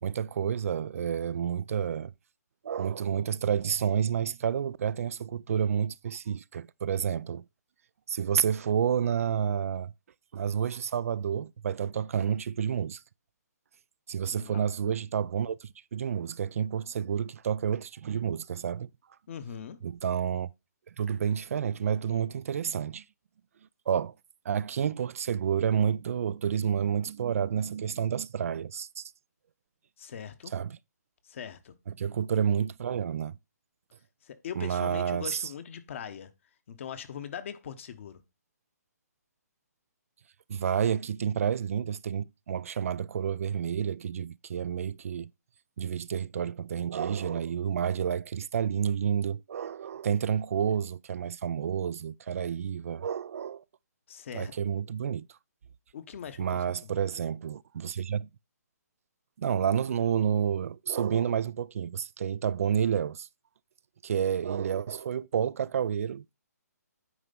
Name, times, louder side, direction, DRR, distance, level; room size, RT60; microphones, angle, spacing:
voice 1, 0.0-2.1 2.6-7.5 8.1-9.9 10.3-13.0 14.1-18.9 19.8-20.5 21.0-23.0 23.9-24.1 24.5-29.0 30.5-30.8 31.9-33.4 34.6-35.5 40.5-45.3 45.8-53.6 54.3-55.3 56.4-58.3 59.4-63.3 64.0-66.3, right 8 dB, 55° right, 0.3 m, -29 dB
voice 2, 14.3-14.7 19.3-19.8 30.0-30.5 31.2-31.7 34.2-36.3 36.7-38.2 54.1-54.5 55.9-56.6 57.9-58.0, left 8 dB, 45° left, 1.0 m, -41 dB
9.5 x 3.3 x 5.3 m
hypercardioid pair, 150°, 9 cm